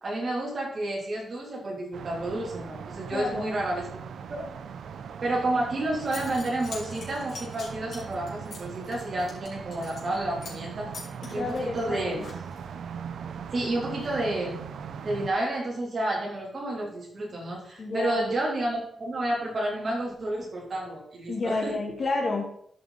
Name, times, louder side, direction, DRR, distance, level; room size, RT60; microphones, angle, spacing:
voice 1, 0.0-3.9 4.3-4.5 5.2-10.9 11.3-12.2 13.5-14.6 15.0-21.7, right 1 dB, 35° right, -4 dB, 3.3 m, -30 dB
sound 1, 1.9-15.3, right 7 dB, 75° right, 0.6 m, -40 dB
voice 2, 3.1-3.5 11.2-12.3 17.8-18.3 21.3-22.4, left 3 dB, 35° left, 1 dB, 1.4 m, -30 dB
Zipper (clothing) / Coin (dropping), 5.7-5.8 6.0-10.1 10.4-10.7 10.9-12.7, left 3 dB, 60° left, 3.2 m, -44 dB
13.0 x 5.1 x 4.1 m, 0.68 s
wide cardioid pair, 180°, 0 cm